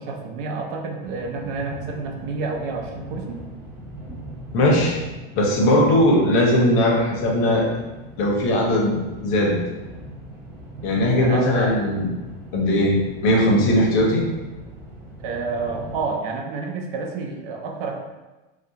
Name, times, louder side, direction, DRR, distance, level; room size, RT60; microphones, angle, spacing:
voice 1, 0.0-3.4 11.1-11.5 15.2-18.0, right 4 dB, 55° right, 2 dB, 0.5 m, -29 dB
sound 1, 1.0-16.0, right 1 dB, 5° right, 0.5 m, -40 dB
voice 2, 4.5-5.0 5.4-7.7 8.2-9.6 10.8-12.1 12.5-14.2, left 1 dB, 45° left, -1 dB, 0.6 m, -19 dB
2.3 x 2.2 x 2.7 m, 1.1 s
supercardioid pair, 130°, 30 cm